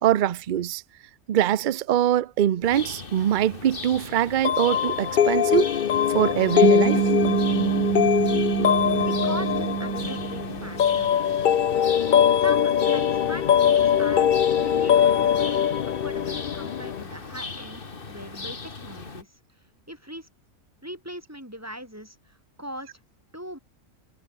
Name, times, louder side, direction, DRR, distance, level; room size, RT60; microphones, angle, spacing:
voice 1, 0.0-0.8 1.3-5.7 6.1-7.0, right 11 dB, 55° right, 0.5 m, -23 dB
sound 1, 2.6-19.2, left 4 dB, 40° left, 1.9 m, -38 dB
sound 2, 4.4-17.0, left 9 dB, 55° left, 0.6 m, -22 dB
sound 3, 6.6-11.3, right 12 dB, 80° right, 1.2 m, -26 dB
voice 2, 9.0-11.1 12.4-15.5 15.9-17.8 18.1-19.3 19.9-20.3 20.8-23.0 23.3-23.6, equal, 10° right, 5.0 m, -40 dB
omnidirectional pair, 1.5 m